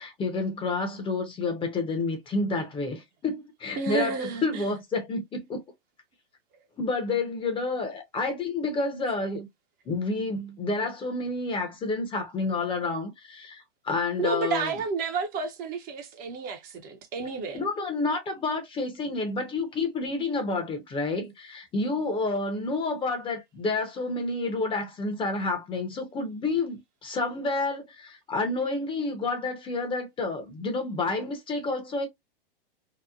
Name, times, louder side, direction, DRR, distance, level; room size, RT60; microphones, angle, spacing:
voice 1, 0.0-5.6 6.8-9.5 9.9-14.7 17.5-32.1, left 3 dB, 15° left, 0.7 m, -29 dB
voice 2, 3.8-4.7 14.2-17.6, right 4 dB, 30° right, 0.6 m, -31 dB
2.9 x 2.1 x 2.3 m
hypercardioid pair, 110°, 29 cm